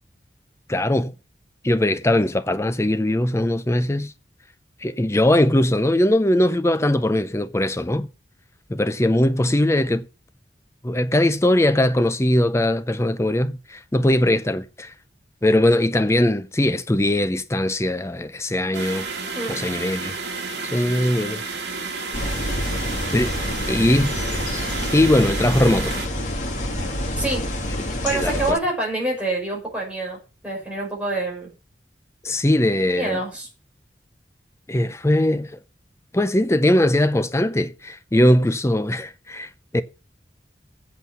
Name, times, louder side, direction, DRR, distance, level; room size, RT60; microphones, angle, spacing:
voice 1, 0.7-1.1 1.6-4.1 4.8-8.1 8.7-10.1 10.8-14.9 15.4-19.1 19.5-20.2 20.7-21.4 23.1-23.3 23.7-24.1 24.9-25.9 28.1-28.4 32.2-33.2 34.7-35.5 36.1-39.8, left 1 dB, 15° left, 0.6 m, -20 dB
sound 1, 18.7-26.1, right 4 dB, 80° right, 2.3 m, -31 dB
sound 2, 22.1-28.5, left 1 dB, 45° left, 2.5 m, -27 dB
voice 2, 27.2-27.5 28.0-31.5 33.0-33.5, right 2 dB, 5° right, 5.7 m, -26 dB
8.3 x 7.6 x 6.9 m
head